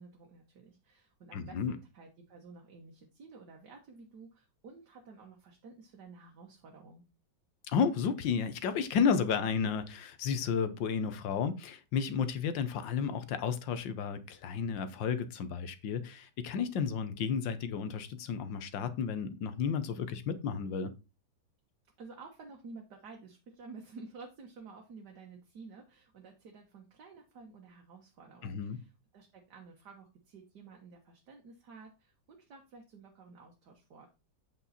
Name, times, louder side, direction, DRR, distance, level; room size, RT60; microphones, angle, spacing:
voice 1, 0.0-7.0 22.0-34.1, right 4 dB, 65° right, 1.8 m, -52 dB
voice 2, 1.3-1.8 7.7-20.9 28.4-28.8, left 6 dB, 85° left, 1.7 m, -32 dB
8.4 x 5.6 x 4.1 m
omnidirectional pair, 2.0 m